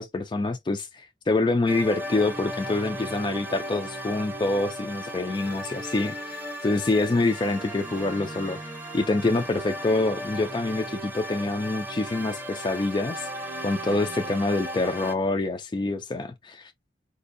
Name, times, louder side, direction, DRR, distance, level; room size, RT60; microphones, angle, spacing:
voice 1, 0.0-8.6 8.9-13.3 13.6-16.7, left 2 dB, 25° left, 0.3 m, -26 dB
sound 1, 1.7-15.1, equal, 10° right, 0.6 m, -36 dB
4.1 x 2.6 x 2.5 m
head